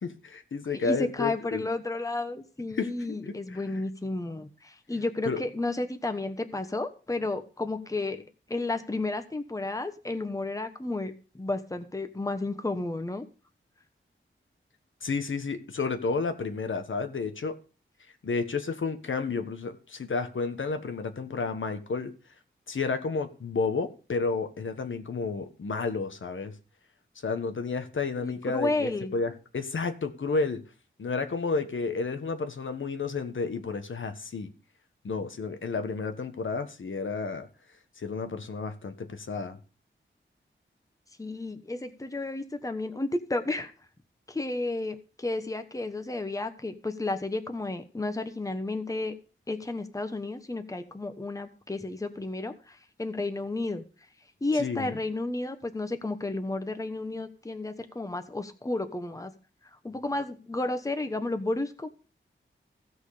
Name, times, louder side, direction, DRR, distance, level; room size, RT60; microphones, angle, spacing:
voice 1, 0.0-1.7 2.7-3.6 5.2-5.4 15.0-17.6 18.2-22.1 22.7-26.5 27.2-30.6 31.0-34.5 35.0-37.5 38.0-39.6 54.5-55.0, left 4 dB, 70° left, 1.4 m, -31 dB
voice 2, 0.7-8.2 8.5-13.2 28.2-29.1 41.2-43.7 44.3-49.1 49.5-53.8 54.4-59.3 59.8-61.9, left 2 dB, 15° left, 1.1 m, -32 dB
16.0 x 6.4 x 5.0 m
wide cardioid pair, 115°, 21 cm